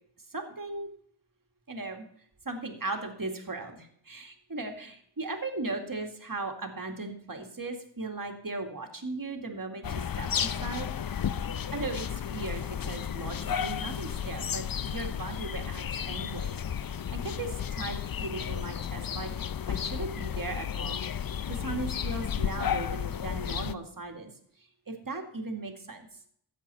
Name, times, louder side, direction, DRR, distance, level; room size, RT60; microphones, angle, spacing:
voice 1, 0.3-0.9 1.7-2.1 2.5-10.9 11.7-16.6 16.9-19.3 19.7-24.3 24.9-26.1, right 3 dB, 45° right, 4 dB, 2.1 m, -37 dB
sound 1, 9.8-23.7, left 8 dB, 50° left, 0.6 m, -33 dB
13.5 x 8.1 x 4.2 m, 0.65 s
cardioid pair, 40°, 47 cm